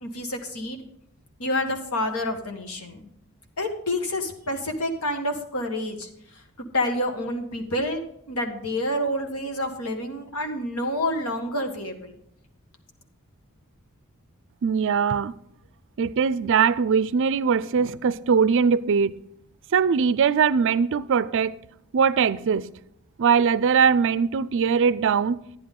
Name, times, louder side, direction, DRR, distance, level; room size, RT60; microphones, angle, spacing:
voice 1, 0.0-0.8 1.4-3.1 3.6-6.1 6.7-12.2, left 1 dB, 75° left, 1.5 m, -28 dB
voice 2, 14.6-15.3 16.0-19.1 19.7-21.6 21.9-22.7 23.2-25.4, right 6 dB, 60° right, 0.4 m, -21 dB
10.5 x 10.5 x 3.7 m
head